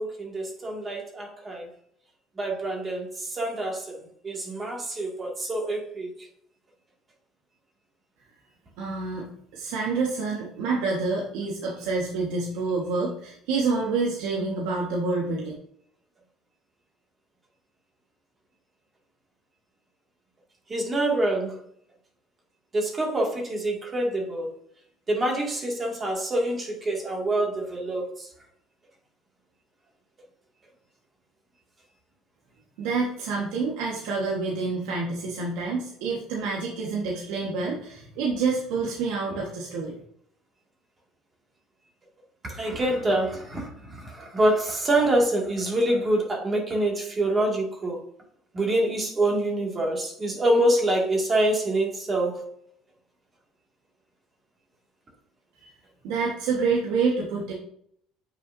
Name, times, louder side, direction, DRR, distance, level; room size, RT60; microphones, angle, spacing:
voice 1, 0.0-1.7 2.4-4.0 4.2-6.1 20.7-21.5 22.7-24.5 25.1-28.3 42.4-48.0 48.5-52.4, right 1 dB, 25° right, 0 dB, 2.3 m, -26 dB
voice 2, 8.8-15.5 32.8-39.9 55.6-55.7 56.0-57.5, right 4 dB, 85° right, -3 dB, 1.5 m, -28 dB
9.0 x 6.0 x 2.7 m, 0.66 s
cardioid pair, 130°, 0 cm